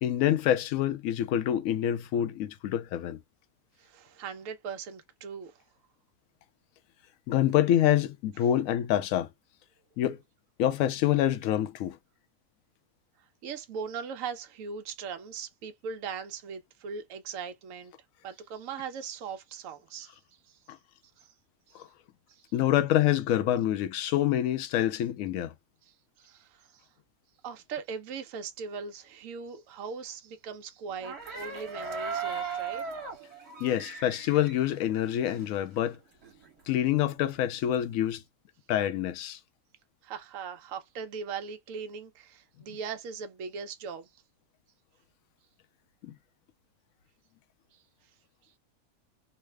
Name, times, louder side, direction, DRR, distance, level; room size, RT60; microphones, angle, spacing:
voice 1, 0.0-3.2 7.3-9.3 10.0-10.2 10.6-12.0 21.7-21.9 22.5-25.5 33.6-36.0 36.7-38.2 38.7-39.4 46.0-46.1, left 11 dB, 70° left, 0.9 m, -26 dB
voice 2, 3.8-5.6 13.4-17.9 18.2-20.2 20.5-20.6 21.2-21.3 21.7-21.8 22.3-22.4 26.2-26.8 27.4-32.8 40.0-44.1, right 6 dB, 70° right, 1.0 m, -39 dB
sound 1, 31.0-35.6 35.9-36.0 36.2-38.1, right 5 dB, 50° right, 1.3 m, -38 dB
3.2 x 2.0 x 3.2 m
omnidirectional pair, 1.5 m